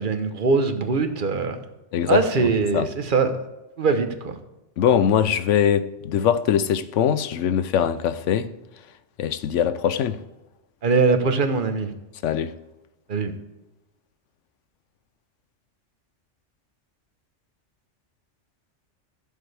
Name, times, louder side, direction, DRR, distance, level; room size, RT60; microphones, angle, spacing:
voice 1, 0.0-1.6 2.1-3.3 3.8-4.4 10.8-11.9 13.1-13.3, right 4 dB, 50° right, 1.1 m, -22 dB
voice 2, 1.9-2.9 4.8-8.5 9.2-10.2 12.2-12.5, left 9 dB, 85° left, 1.0 m, -22 dB
15.0 x 7.1 x 3.4 m
omnidirectional pair, 1.2 m